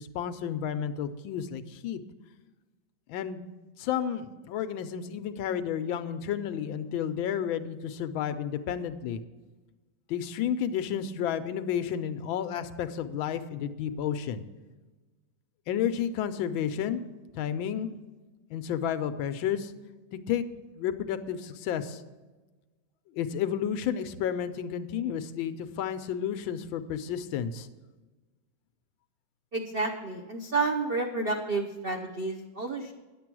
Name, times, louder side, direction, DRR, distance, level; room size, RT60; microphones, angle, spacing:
voice 1, 0.0-2.0 3.1-9.2 10.1-14.4 15.7-17.0 17.3-17.9 18.5-19.7 20.3-20.4 20.7-22.0 23.1-27.7, left 9 dB, 80° left, 11 dB, 1.4 m, -31 dB
voice 2, 29.5-32.9, right 3 dB, 75° right, 3 dB, 0.5 m, -30 dB
10.5 x 7.7 x 6.0 m, 1.2 s
omnidirectional pair, 2.2 m